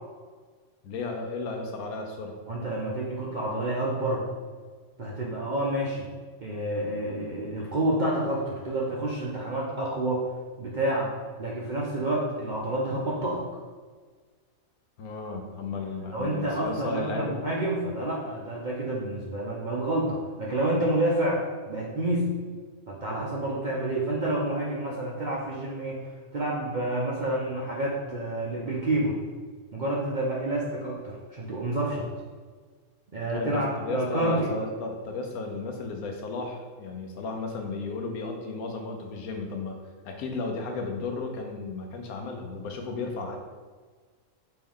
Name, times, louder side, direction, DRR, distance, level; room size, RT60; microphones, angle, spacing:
voice 1, 0.8-2.4 15.0-17.3 33.3-39.8 40.0-43.4, left 3 dB, 90° left, 3 dB, 1.1 m, -34 dB
voice 2, 2.5-4.2 5.0-6.1 6.4-10.3 10.6-11.1 11.4-13.4 16.1-22.4 22.9-26.0 26.3-29.2 29.7-32.1 33.1-34.5, right 1 dB, 55° right, -4 dB, 0.5 m, -29 dB
4.4 x 3.2 x 3.6 m, 1.5 s
omnidirectional pair, 1.5 m